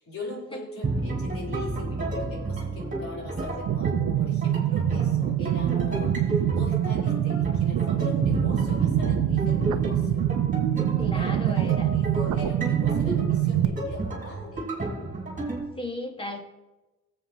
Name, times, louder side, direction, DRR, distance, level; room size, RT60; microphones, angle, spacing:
voice 1, 0.0-10.3 10.9-14.7, left 1 dB, 45° left, -4 dB, 3.9 m, -41 dB
sound 1, 0.8-15.6, right 2 dB, 25° right, 3.3 m, -31 dB
sound 2, 3.7-13.7, right 12 dB, 75° right, 0.7 m, -25 dB
voice 2, 11.0-11.9 15.8-16.5, left 1 dB, 15° left, 3 dB, 1.9 m, -35 dB
19.0 x 7.8 x 3.0 m, 1.1 s
cardioid pair, 90°, 30 cm